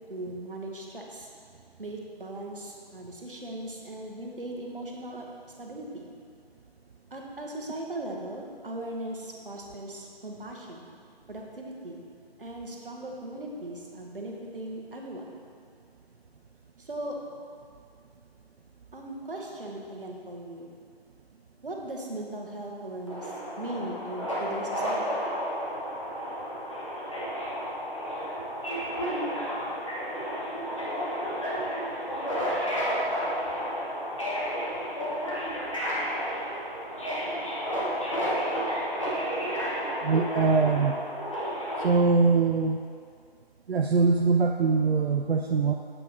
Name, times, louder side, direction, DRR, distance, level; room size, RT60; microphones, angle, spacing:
voice 1, 0.1-1.3 1.8-5.3 5.6-6.1 7.1-10.9 11.3-12.0 12.4-15.4 16.8-17.2 18.9-20.7 21.6-25.2, right 1 dB, 60° right, 0 dB, 1.1 m, -38 dB
Subway metro underground, 23.1-41.9, equal, 30° left, 1.1 m, -31 dB
voice 2, 40.0-41.0 41.8-42.8 43.7-45.7, right 4 dB, 85° right, 3 dB, 0.5 m, -23 dB
7.5 x 4.8 x 3.9 m, 2.2 s
figure-of-eight pair, 165°, 30 cm